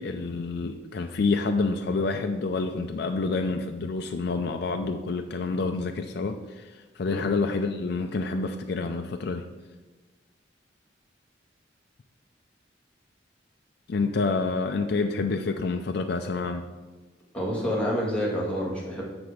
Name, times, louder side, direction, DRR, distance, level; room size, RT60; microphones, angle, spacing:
voice 1, 0.0-9.4 13.9-16.6, left 3 dB, 60° left, 4 dB, 0.4 m, -28 dB
voice 2, 17.3-19.0, equal, 5° left, -5 dB, 1.9 m, -28 dB
7.0 x 5.9 x 4.9 m, 1.2 s
head